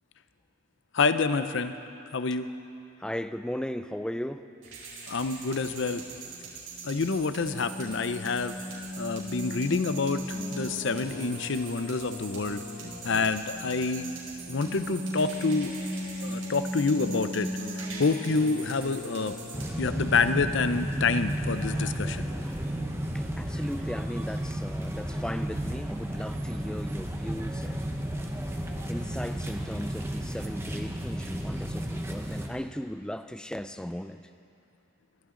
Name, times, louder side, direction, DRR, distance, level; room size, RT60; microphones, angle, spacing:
voice 1, 0.9-1.8 2.1-2.5 5.1-6.0 6.8-8.6 9.0-12.6 13.0-14.1 14.5-15.7 16.2-17.5 17.8-19.4 19.8-22.3, left 4 dB, 55° left, 11 dB, 0.6 m, -27 dB
voice 2, 3.0-4.5 22.3-22.7 23.1-27.8 28.9-34.3, equal, 5° left, 10 dB, 0.3 m, -37 dB
sound 1, 4.6-19.7, equal, 80° right, 4.6 m, -37 dB
sound 2, 19.5-32.5, equal, 10° right, 0.9 m, -33 dB
22.5 x 14.0 x 3.8 m, 2.7 s
head